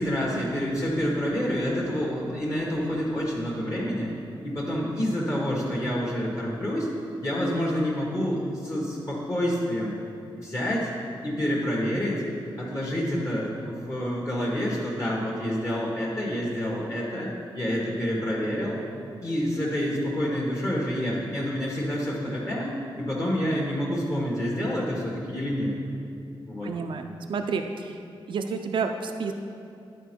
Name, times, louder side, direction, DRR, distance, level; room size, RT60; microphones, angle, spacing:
voice 1, 0.0-4.1 4.4-6.9 7.2-9.9 10.4-10.9 11.2-12.2 12.6-18.8 19.2-22.7 23.0-25.7 26.5-26.7, equal, 35° left, -4 dB, 1.4 m, -28 dB
voice 2, 26.6-28.0 28.3-29.3, right 5 dB, 60° right, 5 dB, 0.4 m, -30 dB
10.0 x 4.3 x 4.5 m, 2.6 s
cardioid pair, 85°, 9 cm